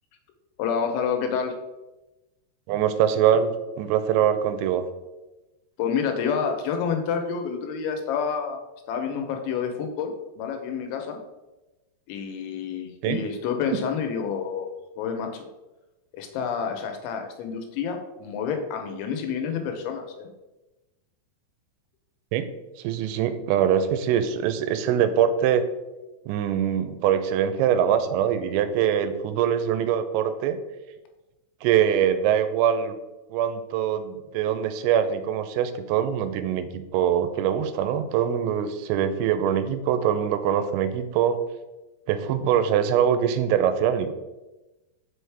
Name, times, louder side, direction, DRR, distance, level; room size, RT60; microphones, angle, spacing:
voice 1, 0.6-1.6 5.8-8.6 8.9-11.2 12.1-14.7 15.0-15.5 16.1-20.3, left 6 dB, 85° left, 4 dB, 3.1 m, -28 dB
voice 2, 2.7-4.8 13.0-13.2 22.3-22.5 22.8-25.7 26.3-30.6 31.6-33.0 33.3-41.4 42.1-44.1, right 9 dB, 90° right, 10 dB, 2.9 m, -23 dB
6.3 x 5.0 x 3.3 m, 1.0 s
omnidirectional pair, 5.1 m